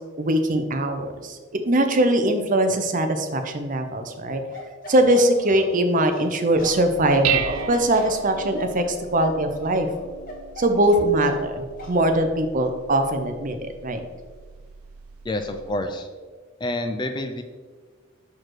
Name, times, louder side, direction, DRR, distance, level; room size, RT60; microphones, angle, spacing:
voice 1, 0.2-4.4 4.9-9.9 10.6-14.0, right 1 dB, 40° right, 7 dB, 0.6 m, -21 dB
Bark, 4.5-11.5 11.8-12.0, left 1 dB, 40° left, 1.3 m, -38 dB
Dishes pots and pans, 6.6-15.8, right 9 dB, 90° right, 0.4 m, -35 dB
voice 2, 15.2-16.1 16.6-17.4, left 1 dB, 20° left, 7 dB, 0.4 m, -28 dB
6.1 x 4.7 x 4.6 m, 1.5 s
head